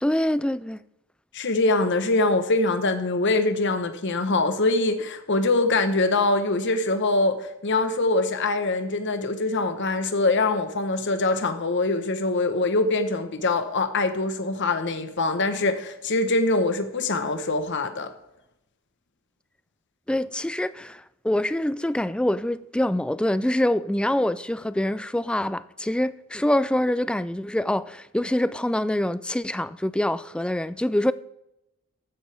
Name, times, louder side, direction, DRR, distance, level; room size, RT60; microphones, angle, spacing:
voice 1, 0.0-0.8 20.1-31.1, left 1 dB, 5° left, 0.3 m, -25 dB
voice 2, 1.3-18.1, left 2 dB, 55° left, 1.1 m, -23 dB
14.5 x 11.5 x 3.4 m
head